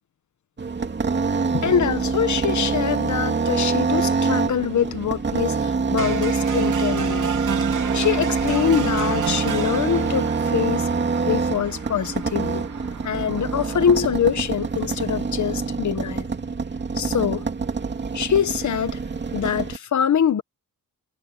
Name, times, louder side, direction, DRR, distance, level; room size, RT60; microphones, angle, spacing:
sound 1, 0.6-19.8, right 4 dB, 30° right, 2.6 m, -25 dB
voice 1, 1.5-7.3 7.9-10.9 11.2-12.6 13.0-16.3 17.0-17.4 18.1-19.0 19.3-20.4, left 8 dB, 60° left, 1.3 m, -24 dB
sound 2, 6.0-14.0, right 8 dB, 65° right, 3.5 m, -33 dB
wide cardioid pair, 155°, 33 cm